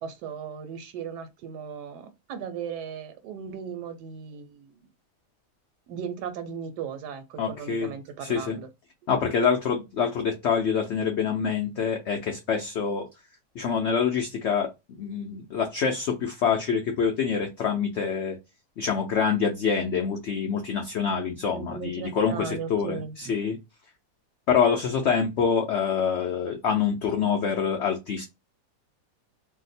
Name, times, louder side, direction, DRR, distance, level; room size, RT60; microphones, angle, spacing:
voice 1, 0.0-4.8 5.9-8.7 21.5-23.2, right 7 dB, 80° right, 1.2 m, -37 dB
voice 2, 7.4-7.9 8.2-8.6 9.1-13.1 13.6-18.4 18.8-23.6 24.5-28.2, left 6 dB, 85° left, 0.6 m, -26 dB
2.7 x 2.1 x 4.0 m
omnidirectional pair, 1.8 m